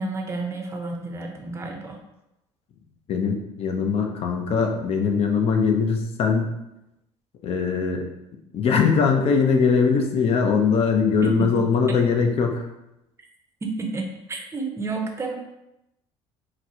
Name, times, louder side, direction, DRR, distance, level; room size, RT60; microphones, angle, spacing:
voice 1, 0.0-2.0 11.2-11.4 13.6-15.4, right 3 dB, 20° right, 2 dB, 0.6 m, -30 dB
voice 2, 3.1-6.5 7.4-8.1 8.5-12.7, left 5 dB, 50° left, 4 dB, 0.6 m, -21 dB
4.1 x 2.2 x 2.8 m, 0.89 s
supercardioid pair, 85°, 13 cm